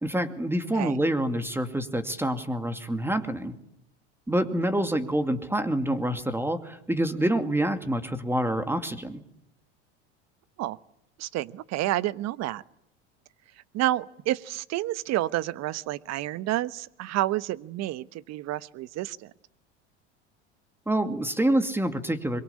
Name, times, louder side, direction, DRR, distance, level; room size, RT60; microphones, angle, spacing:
voice 1, 0.0-3.5 4.3-9.2 20.9-22.4, right 1 dB, 5° right, 9 dB, 2.3 m, -27 dB
voice 2, 11.2-12.6 13.7-19.3, right 15 dB, 50° right, 17 dB, 1.1 m, -29 dB
24.0 x 23.0 x 8.5 m, 0.81 s
hypercardioid pair, 80°, 34 cm